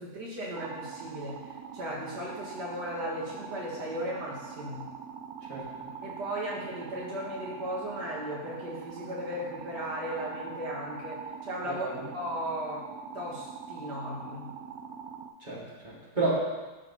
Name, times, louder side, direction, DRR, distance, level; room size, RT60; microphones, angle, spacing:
voice 1, 0.0-4.9 6.0-11.9 12.1-12.9 13.1-14.5, equal, 85° right, -5 dB, 2.2 m, -36 dB
sound 1, 0.5-15.3, right 6 dB, 70° right, 1.0 m, -43 dB
voice 2, 11.6-12.1 15.4-16.4, right 3 dB, 30° right, -6 dB, 1.9 m, -31 dB
11.5 x 4.9 x 2.8 m, 1.2 s
omnidirectional pair, 1.8 m